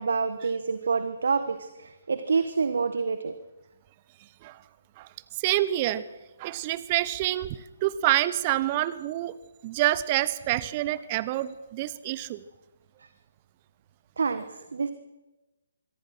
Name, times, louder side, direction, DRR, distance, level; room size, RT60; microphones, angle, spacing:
voice 1, 0.0-3.3 14.2-14.9, right 5 dB, 60° right, 11 dB, 1.5 m, -27 dB
voice 2, 5.4-6.0 6.4-9.3 9.6-12.4, right 15 dB, 30° right, 17 dB, 1.0 m, -27 dB
26.0 x 23.0 x 6.2 m, 1.1 s
figure-of-eight pair, 135°, 0 cm